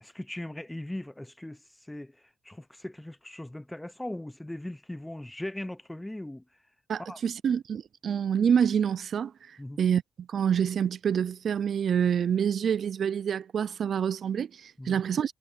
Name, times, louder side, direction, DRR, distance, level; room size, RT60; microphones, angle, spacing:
voice 1, 0.0-1.6 1.9-2.1 2.4-6.4 7.1-7.2 9.6-9.8 14.8-15.0, left 1 dB, 5° left, 0.4 m, -39 dB
voice 2, 6.9-9.3 9.8-15.3, right 8 dB, 55° right, 0.4 m, -27 dB
wide cardioid pair, 150°, 0 cm